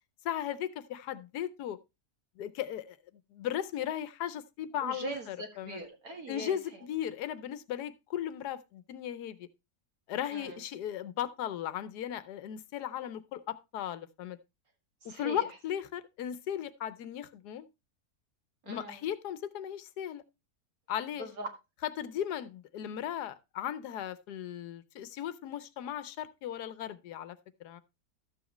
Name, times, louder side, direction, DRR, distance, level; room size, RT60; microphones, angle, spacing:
voice 1, 0.2-1.8 2.4-3.0 3.3-5.8 6.3-9.5 10.1-14.4 15.0-17.7 18.7-20.2 20.9-21.3 22.0-27.8, left 10 dB, 85° left, 1.3 m, -37 dB
voice 2, 4.8-6.6 10.3-10.6 15.0-15.5 18.6-19.1 21.2-21.5, right 2 dB, 65° right, 2.1 m, -41 dB
12.5 x 7.1 x 3.0 m
omnidirectional pair, 1.7 m